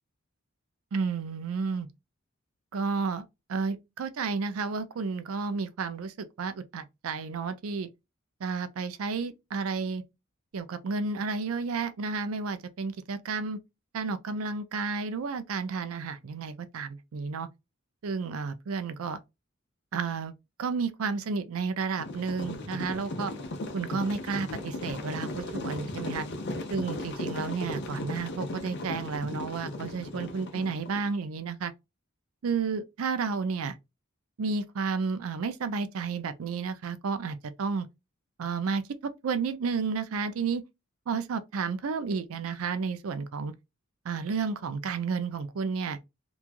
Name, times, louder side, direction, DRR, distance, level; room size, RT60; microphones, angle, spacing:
voice 1, 0.9-1.9 2.7-7.9 8.4-10.0 10.5-13.6 13.9-17.5 18.0-19.2 19.9-20.3 20.6-23.3 23.7-26.3 26.7-31.7 32.4-33.8 34.4-37.9 38.4-40.6 41.1-43.5 44.0-46.0, right 5 dB, 85° right, 0.4 m, -32 dB
sound 1, 22.0-31.1, left 2 dB, 55° left, 0.6 m, -36 dB
3.0 x 2.3 x 2.4 m
head